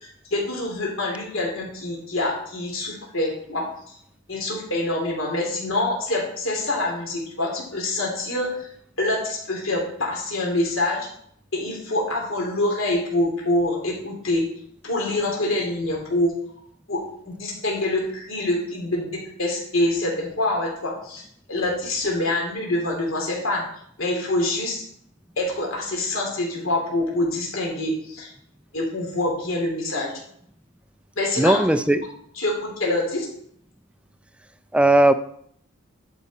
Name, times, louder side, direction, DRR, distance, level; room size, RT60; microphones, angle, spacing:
voice 1, 0.0-4.0 4.3-8.7 9.0-11.1 11.5-14.5 14.8-16.3 16.9-23.6 24.0-24.8 25.4-28.3 28.7-30.1 31.2-31.6 32.4-33.3, left 1 dB, 70° left, -1 dB, 3.0 m, -25 dB
voice 2, 31.4-32.1 34.7-35.1, right 1 dB, 5° right, 10 dB, 0.4 m, -17 dB
11.0 x 5.4 x 4.2 m, 0.67 s
head